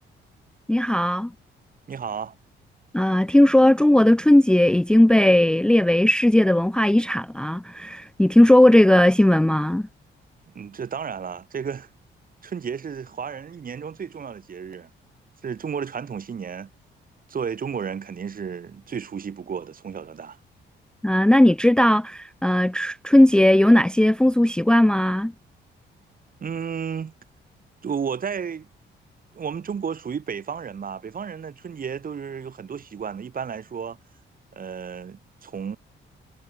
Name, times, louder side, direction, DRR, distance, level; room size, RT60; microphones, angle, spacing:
voice 1, 0.7-1.3 2.9-9.9 21.0-25.3, left 1 dB, 5° left, 0.6 m, -17 dB
voice 2, 1.9-2.4 10.6-11.9 12.4-14.9 15.4-16.7 17.3-20.4 26.4-27.1 27.8-28.7 29.3-34.0 34.5-35.8, right 7 dB, 45° right, 3.6 m, -32 dB
cardioid pair, 90°, 20 cm